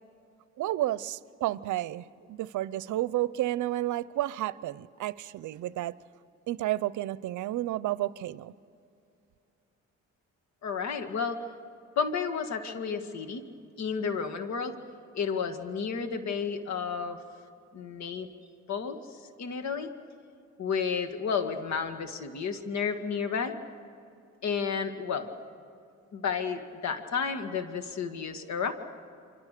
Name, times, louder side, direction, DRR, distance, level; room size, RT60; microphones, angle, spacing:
voice 1, 0.6-5.9 6.5-8.5, right 14 dB, 75° right, 18 dB, 0.7 m, -31 dB
voice 2, 10.6-11.4 12.0-13.4 13.8-14.8 15.1-17.2 17.7-18.3 18.7-19.0 19.4-19.9 20.6-23.5 24.4-25.3 26.1-28.7, left 6 dB, 65° left, 7 dB, 2.1 m, -31 dB
29.0 x 25.0 x 6.8 m, 2.5 s
cardioid pair, 90°, 30 cm